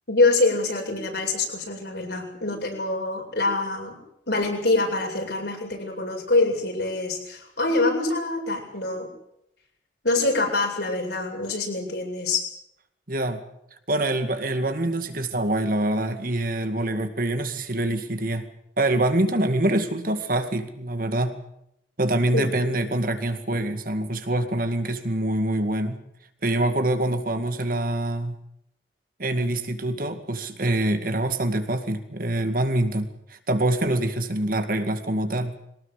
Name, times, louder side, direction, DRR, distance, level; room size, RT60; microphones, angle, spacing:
voice 1, 0.1-3.9 4.3-9.1 10.0-12.4 22.3-22.5, left 2 dB, 65° left, 1 dB, 7.9 m, -25 dB
voice 2, 13.1-13.4 13.9-18.5 18.8-21.4 22.0-26.0 26.4-28.4 29.2-35.5, right 1 dB, 50° right, 7 dB, 2.2 m, -25 dB
23.0 x 19.0 x 8.3 m, 0.78 s
head